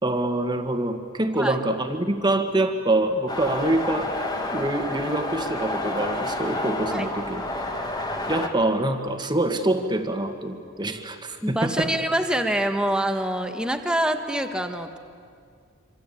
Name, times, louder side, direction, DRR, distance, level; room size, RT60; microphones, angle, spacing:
voice 1, 0.0-7.4 8.3-11.9, right 1 dB, 20° right, 6 dB, 1.8 m, -25 dB
sound 1, 3.3-8.5, left 2 dB, 20° left, 2.1 m, -29 dB
voice 2, 11.4-15.0, right 1 dB, 5° right, 5 dB, 1.5 m, -25 dB
26.5 x 26.0 x 8.6 m, 2.2 s
head